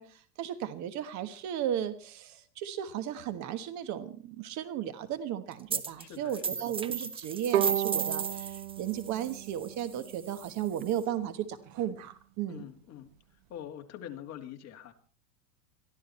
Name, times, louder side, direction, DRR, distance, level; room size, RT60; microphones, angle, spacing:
voice 1, 0.0-12.6, right 10 dB, 35° right, 13 dB, 1.4 m, -35 dB
sound 1, 5.7-6.0 6.3-11.0, right 5 dB, 10° right, 0.8 m, -35 dB
voice 2, 6.0-6.7 12.5-13.1 13.5-14.9, left 10 dB, 35° left, 5 dB, 2.3 m, -44 dB
Bowed string instrument, 7.5-10.6, right 13 dB, 60° right, 1.9 m, -33 dB
23.0 x 14.0 x 4.3 m, 0.40 s
supercardioid pair, 135°, 47 cm